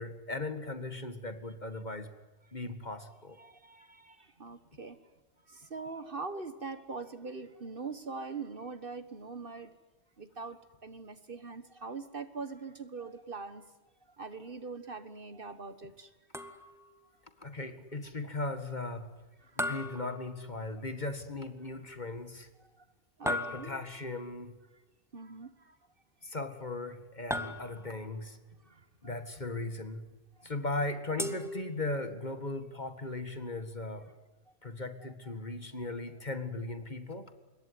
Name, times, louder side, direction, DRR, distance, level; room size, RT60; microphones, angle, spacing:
voice 1, 0.0-2.1 2.5-3.4 17.4-19.1 19.6-22.5 23.2-24.5 26.2-28.4 29.0-30.1 30.4-34.1 34.6-37.3, left 2 dB, 35° left, 9 dB, 2.0 m, -38 dB
voice 2, 3.4-5.0 5.5-9.7 10.2-13.7 14.2-16.1 19.4-19.5 23.2-23.8 25.1-25.7 28.7-29.1 30.4-30.5, right 4 dB, 45° right, 11 dB, 1.6 m, -43 dB
sound 1, 16.3-17.0 19.6-20.8 23.3-24.1 27.3-28.1 31.2-32.2, left 1 dB, ahead, 1.8 m, -37 dB
26.0 x 22.0 x 9.6 m, 1.2 s
omnidirectional pair, 1.3 m